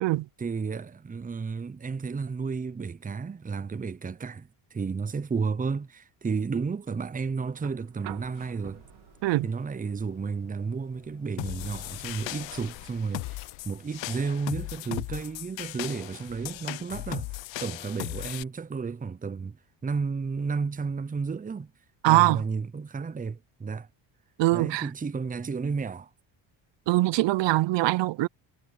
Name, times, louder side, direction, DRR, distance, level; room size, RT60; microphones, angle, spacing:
voice 1, 0.4-8.8 9.4-21.7 22.1-23.9 24.5-26.1, right 5 dB, 15° right, 0.7 m, -32 dB
sound 1, 7.5-15.6 17.0-17.1, right 15 dB, 80° right, 3.5 m, -51 dB
sound 2, 8.2-15.0, left 17 dB, 80° left, 1.5 m, -49 dB
sound 3, 11.4-18.4, left 18 dB, 65° left, 0.7 m, -37 dB
voice 2, 22.0-22.4 24.4-24.9 26.9-28.3, right 18 dB, 60° right, 0.6 m, -22 dB
cardioid pair, 85°, 49 cm